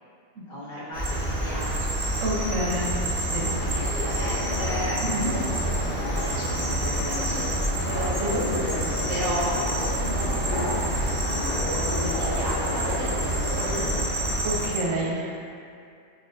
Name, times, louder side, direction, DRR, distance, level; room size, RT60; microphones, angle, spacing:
voice 1, 0.5-2.9 3.4-5.4 6.1-8.1 8.6-8.8 9.1-11.5 11.8-14.4, equal, 80° left, -11 dB, 1.6 m, -36 dB
Cricket, 0.9-14.7, right 1 dB, 5° right, 1.1 m, -29 dB
sound 1, 1.0-14.8, right 3 dB, 45° right, 0.7 m, -33 dB
voice 2, 2.2-3.0 3.3-3.5 5.1-5.3 8.2-8.5 14.4-15.4, right 1 dB, 80° right, -3 dB, 1.1 m, -28 dB
sound 2, 3.7-14.0, left 1 dB, 50° left, 1.1 m, -32 dB
4.5 x 3.0 x 2.5 m, 2.4 s
omnidirectional pair, 1.4 m